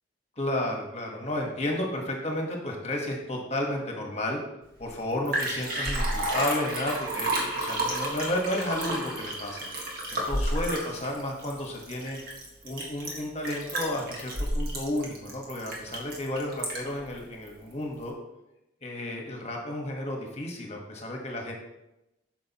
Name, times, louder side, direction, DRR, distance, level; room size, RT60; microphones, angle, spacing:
voice 1, 0.4-4.4 4.8-9.7 10.1-12.2 12.6-18.1 18.8-21.5, left 1 dB, 35° left, 0 dB, 1.4 m, -32 dB
Liquid, 4.8-4.9 5.1-17.0 17.5-17.6, right 1 dB, 55° right, 1.6 m, -31 dB
8.8 x 6.2 x 3.0 m, 0.90 s
head